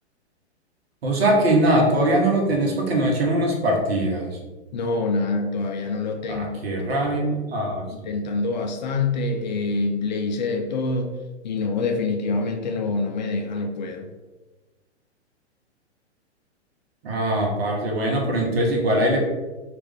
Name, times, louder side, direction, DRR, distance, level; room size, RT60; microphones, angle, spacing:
voice 1, 1.0-4.3 6.3-8.1 17.0-19.2, right 1 dB, 60° right, 0 dB, 1.1 m, -22 dB
voice 2, 4.7-6.7 8.1-11.2 11.4-14.1, left 3 dB, 40° left, 4 dB, 0.4 m, -26 dB
3.2 x 2.5 x 3.5 m, 1.2 s
figure-of-eight pair, 115°, 34 cm